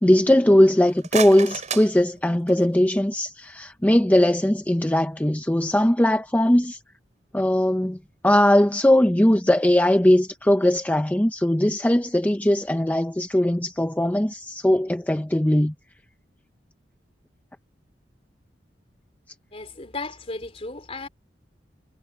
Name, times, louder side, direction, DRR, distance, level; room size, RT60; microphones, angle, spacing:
voice 1, 0.0-6.8 7.3-8.0 8.2-15.7, left 1 dB, 10° left, 0.6 m, -19 dB
sound 1, 0.7-2.8, right 6 dB, 40° right, 5.6 m, -33 dB
voice 2, 19.5-21.1, left 3 dB, 35° left, 3.3 m, -35 dB
head